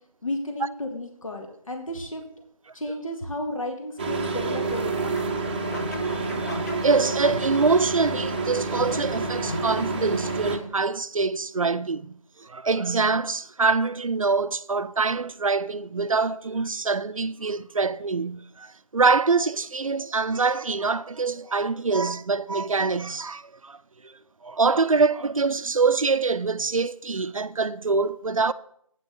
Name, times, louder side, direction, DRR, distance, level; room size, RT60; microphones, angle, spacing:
voice 1, 0.2-2.2 2.7-5.3, left 1 dB, 65° left, 2.0 m, -33 dB
sound 1, 4.0-10.6, right 3 dB, 15° right, 0.7 m, -28 dB
sound 2, 5.0-10.9, left 2 dB, 30° left, 0.9 m, -39 dB
voice 2, 5.9-23.8 24.0-24.2 24.4-28.5, right 4 dB, 65° right, 0.5 m, -25 dB
8.9 x 6.9 x 7.1 m
figure-of-eight pair, 160°, 18 cm